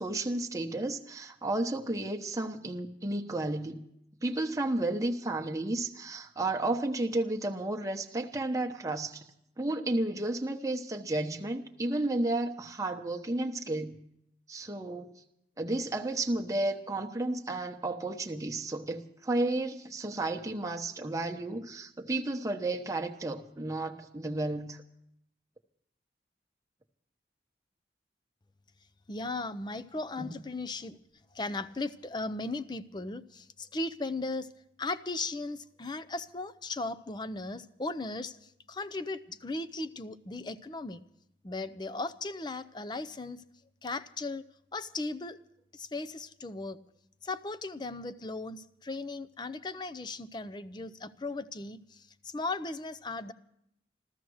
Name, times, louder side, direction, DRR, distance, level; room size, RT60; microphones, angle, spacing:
voice 1, 0.0-3.8 4.2-9.2 9.6-14.0 14.5-15.1 15.6-24.8 30.2-30.3, right 2 dB, 20° right, 3 dB, 1.0 m, -32 dB
voice 2, 29.1-31.0 31.3-34.5 34.8-41.0 41.4-43.4 43.8-44.4 44.7-45.4 45.7-46.8 47.2-53.3, left 2 dB, 25° left, 14 dB, 0.5 m, -37 dB
15.0 x 14.0 x 6.3 m, 0.76 s
head